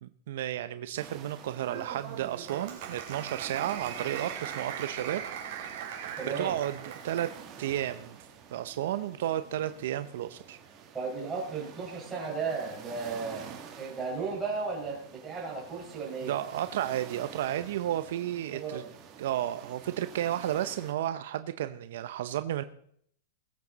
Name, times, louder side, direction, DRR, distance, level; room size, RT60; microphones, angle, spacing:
voice 1, 0.0-5.2 6.2-7.3 7.6-8.2 8.5-10.6 16.2-18.8 19.2-22.6, right 12 dB, 65° right, 11 dB, 0.7 m, -32 dB
sound 1, 1.0-20.9, right 7 dB, 30° right, 2.4 m, -49 dB
Applause, 1.6-7.4, right 9 dB, 50° right, 3.7 m, -40 dB
voice 2, 6.2-6.6 10.9-13.5 13.8-16.3 18.5-18.9, right 4 dB, 15° right, -4 dB, 5.2 m, -35 dB
21.0 x 8.4 x 4.1 m, 0.65 s
supercardioid pair, 145°, 0 cm